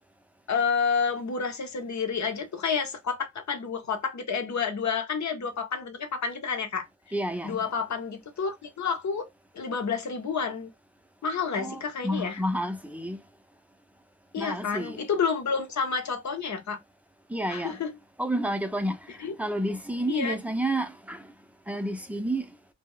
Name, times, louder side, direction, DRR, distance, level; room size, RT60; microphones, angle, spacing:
voice 1, 0.5-6.9 7.4-9.2 9.5-10.7 11.2-12.4 14.3-16.8 17.5-17.9 19.2-19.3 20.1-20.4, left 5 dB, 55° left, 0.8 m, -29 dB
voice 2, 7.1-7.6 11.5-13.2 14.4-15.0 17.3-17.8 18.2-19.0 19.4-21.3 21.7-22.4, right 1 dB, 5° right, 0.6 m, -30 dB
2.3 x 2.1 x 3.7 m
cardioid pair, 45°, 33 cm